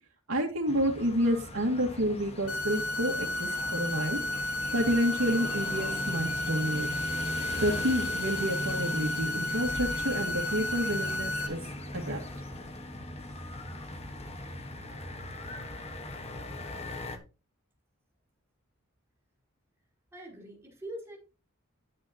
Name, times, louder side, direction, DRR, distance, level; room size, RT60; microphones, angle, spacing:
voice 1, 0.3-4.2 4.7-6.9 7.6-11.6 11.9-12.2, equal, 70° right, -2 dB, 2.0 m, -29 dB
sound 1, 0.7-17.2, left 1 dB, 30° left, 1.5 m, -39 dB
sound 2, 2.5-11.5, left 1 dB, 85° left, 2.3 m, -33 dB
voice 2, 20.1-21.2, right 1 dB, 10° right, 0 dB, 4.8 m, -43 dB
10.5 x 9.4 x 2.9 m, 0.31 s
head